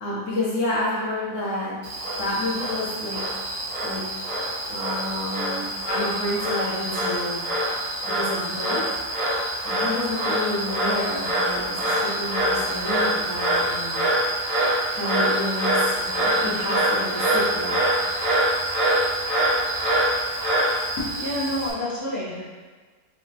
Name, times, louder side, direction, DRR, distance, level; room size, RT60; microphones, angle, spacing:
voice 1, 0.0-1.8 2.2-3.2 3.8-4.0 4.7-7.4 8.0-14.1 14.9-17.8, left 1 dB, 55° left, -7 dB, 1.0 m, -29 dB
Frog, 1.8-21.7, right 1 dB, 55° right, 1.3 m, -25 dB
voice 2, 21.0-22.4, left 1 dB, 80° left, -8 dB, 1.5 m, -28 dB
4.7 x 2.1 x 2.8 m, 1.4 s
omnidirectional pair, 1.8 m